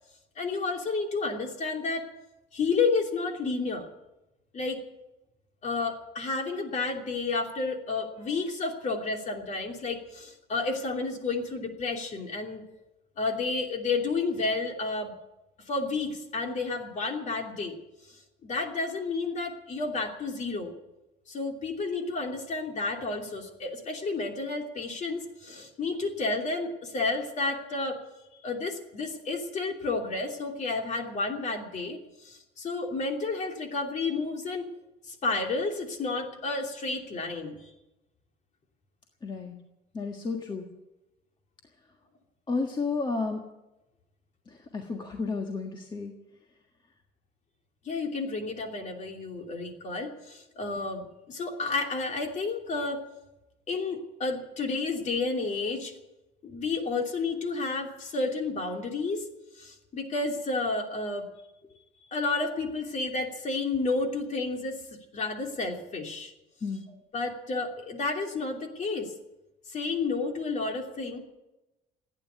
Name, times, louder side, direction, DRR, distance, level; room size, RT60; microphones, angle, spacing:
voice 1, 0.4-2.1 2.5-3.9 4.5-4.8 5.6-12.6 13.2-15.1 15.7-17.8 18.4-20.7 21.3-28.0 28.4-34.7 35.1-37.7 47.8-53.0 53.7-55.9 56.4-59.2 59.6-61.3 62.1-64.8 65.1-66.3 67.1-69.1 69.7-71.2, left 3 dB, 45° left, 3 dB, 3.0 m, -31 dB
voice 2, 39.2-39.6 39.9-40.7 42.5-43.4 44.5-46.1 66.6-66.8, left 4 dB, 25° left, 3 dB, 1.6 m, -32 dB
15.5 x 9.7 x 9.4 m, 0.97 s
cardioid pair, 110°, 17 cm